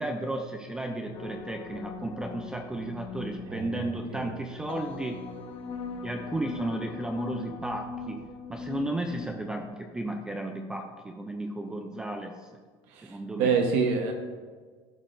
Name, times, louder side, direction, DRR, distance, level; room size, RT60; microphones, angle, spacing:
voice 1, 0.0-5.3 6.0-12.5 13.0-13.5, right 1 dB, 5° right, 4 dB, 0.4 m, -34 dB
sound 1, 1.1-9.3, left 4 dB, 45° left, 0.9 m, -40 dB
voice 2, 3.5-4.3 12.9-14.1, right 5 dB, 65° right, 2 dB, 1.1 m, -28 dB
13.5 x 5.7 x 2.5 m, 1.5 s
cardioid pair, 165°, 11 cm